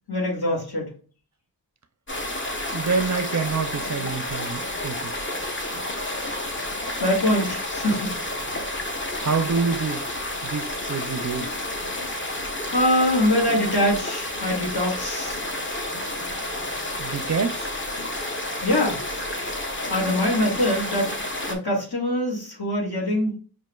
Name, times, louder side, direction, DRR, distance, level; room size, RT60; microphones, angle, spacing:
voice 1, 0.1-0.9 6.9-8.5 12.7-15.4 18.6-19.3 19.9-21.1 21.5-23.3, left 1 dB, 65° left, 2.0 m, -24 dB
sound 1, 2.1-21.6, left 1 dB, 30° left, 0.9 m, -30 dB
voice 2, 2.7-5.1 9.2-10.0 10.4-11.5 17.0-17.7, right 5 dB, 45° right, 0.5 m, -27 dB
6.1 x 2.5 x 2.3 m
wide cardioid pair, 55°, 40 cm